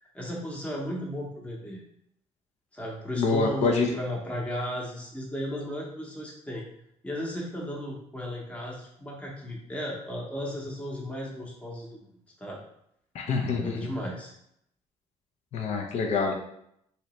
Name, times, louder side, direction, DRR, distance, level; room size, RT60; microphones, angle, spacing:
voice 1, 0.0-1.8 2.7-6.6 7.0-12.0 12.4-12.6 13.5-14.3, equal, 10° left, -3 dB, 0.8 m, -35 dB
voice 2, 3.1-3.9 13.1-13.9 15.5-16.3, left 4 dB, 60° left, 3 dB, 0.5 m, -26 dB
3.1 x 2.8 x 3.0 m, 0.74 s
cardioid pair, 105°, 13 cm